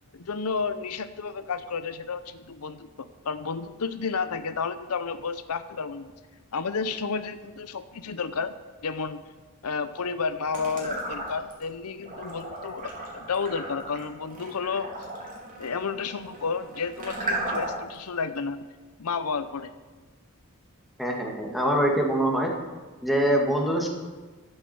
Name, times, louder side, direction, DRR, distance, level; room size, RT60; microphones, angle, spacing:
voice 1, 0.1-6.1 6.5-8.5 8.8-9.2 9.6-14.9 15.6-18.6 19.0-19.7, left 5 dB, 80° left, 11 dB, 0.7 m, -31 dB
sound 1, 10.5-11.6 12.0-18.0, right 1 dB, 40° right, 3.6 m, -35 dB
voice 2, 21.0-22.5 23.0-23.9, equal, ahead, 0 dB, 2.1 m, -24 dB
12.0 x 8.6 x 7.8 m, 1.3 s
head